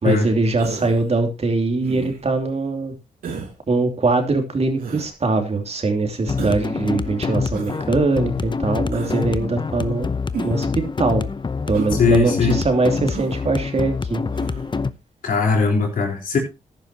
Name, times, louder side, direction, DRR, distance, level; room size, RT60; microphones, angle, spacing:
voice 1, 0.0-2.9 3.7-10.1 10.4-11.2 11.7-14.2, right 3 dB, 45° right, 2.9 m, -22 dB
Human voice, 0.6-1.1 1.8-2.3 3.2-3.5 4.8-5.1 6.4-6.7 7.5-7.8 8.9-9.3 10.3-10.7 11.7-12.0 13.1-13.4 14.3-14.7, right 5 dB, 90° right, 2.8 m, -32 dB
sound 1, 6.3-14.9, left 4 dB, 35° left, 0.7 m, -26 dB
voice 2, 12.0-12.6 15.2-16.4, left 5 dB, 75° left, 4.2 m, -19 dB
14.0 x 10.5 x 2.9 m
cardioid pair, 60°, 14 cm